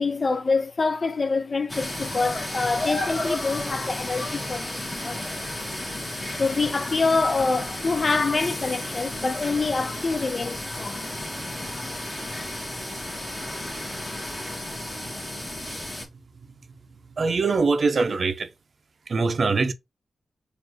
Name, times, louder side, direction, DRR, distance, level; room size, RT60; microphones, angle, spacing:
voice 1, 0.0-5.3 6.4-11.1, left 4 dB, 50° left, 0.4 m, -26 dB
sound 1, 1.7-16.1, left 1 dB, 25° left, 1.4 m, -33 dB
voice 2, 17.2-18.5 19.1-19.7, right 4 dB, 60° right, 0.5 m, -22 dB
4.1 x 2.5 x 3.0 m
cardioid pair, 65°, 0 cm